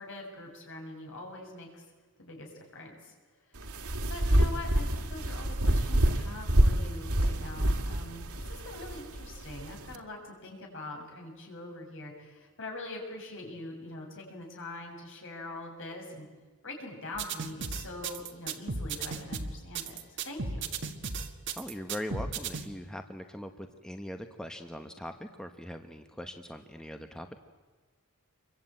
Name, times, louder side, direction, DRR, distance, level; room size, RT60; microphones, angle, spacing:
voice 1, 0.0-1.8 2.2-3.1 4.1-16.3 16.6-20.0 20.2-20.7, left 2 dB, 60° left, 1 dB, 7.0 m, -43 dB
sound 1, 3.5-10.0, right 1 dB, 90° right, 2.1 m, -27 dB
sound 2, 17.1-22.7, right 4 dB, 55° right, 1.8 m, -35 dB
voice 2, 21.6-27.4, left 1 dB, 5° left, 6 dB, 1.0 m, -41 dB
27.0 x 23.5 x 8.9 m, 1.3 s
head